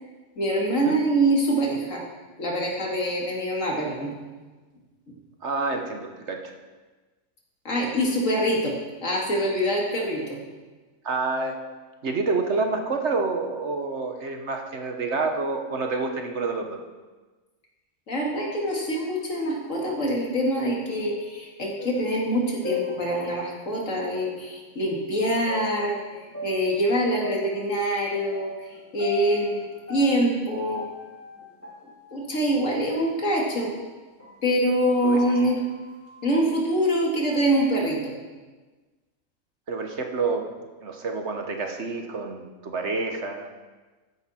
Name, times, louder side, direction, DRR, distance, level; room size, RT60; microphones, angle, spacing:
voice 1, 0.4-2.0 2.4-4.1 7.6-8.7 9.0-10.4 18.1-29.6 29.9-30.8 32.1-33.7 34.4-35.6 36.2-38.1, right 1 dB, 65° left, -1 dB, 2.7 m, -25 dB
voice 2, 5.4-6.5 11.0-11.6 12.0-16.8 35.0-35.2 39.7-43.5, right 3 dB, 55° right, 4 dB, 1.3 m, -28 dB
sound 1, 19.3-23.9 24.4-24.5 25.5-34.5 34.9-36.8, left 5 dB, 10° left, 2.3 m, -40 dB
14.0 x 10.5 x 4.3 m, 1.3 s
omnidirectional pair, 1.5 m